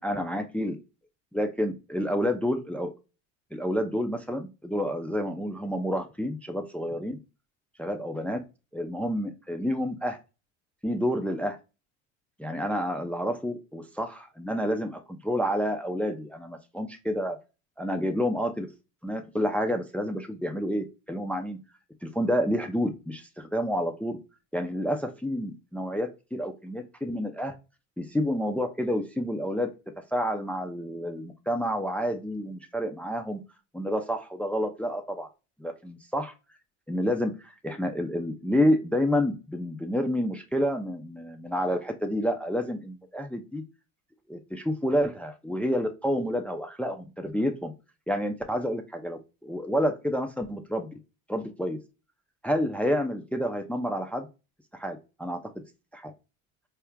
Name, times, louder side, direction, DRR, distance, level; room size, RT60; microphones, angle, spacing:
voice 1, 0.0-0.8 1.3-2.9 3.5-7.2 7.8-8.4 8.7-10.2 10.8-11.6 12.4-17.4 17.8-18.7 19.0-21.6 22.0-24.2 24.5-27.5 28.0-29.7 30.1-33.4 33.7-35.3 35.6-36.3 36.9-43.6 44.3-47.7 48.1-50.9 51.3-51.8 52.4-54.3 54.7-55.4 55.9-56.1, equal, 5° left, 5 dB, 0.5 m, -29 dB
4.3 x 3.5 x 2.2 m, 0.29 s
supercardioid pair, 85°, 38 cm